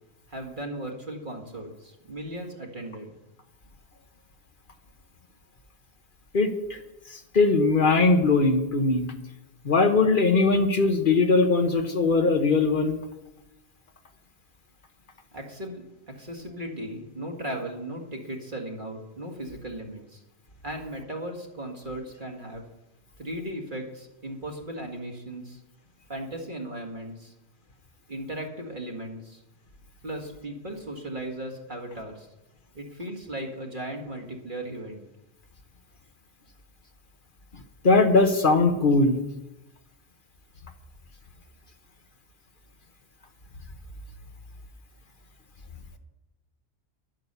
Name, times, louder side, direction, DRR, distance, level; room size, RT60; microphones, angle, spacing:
voice 1, 0.3-3.1 15.3-20.2 20.6-22.6 23.2-25.6 26.1-27.3 28.1-29.4 30.0-32.3 32.7-35.1, right 1 dB, 45° right, 2 dB, 2.2 m, -37 dB
voice 2, 6.3-6.8 7.1-9.1 9.6-13.0 37.8-39.2, left 3 dB, 50° left, 6 dB, 1.2 m, -20 dB
11.5 x 9.0 x 6.8 m, 0.95 s
omnidirectional pair, 1.1 m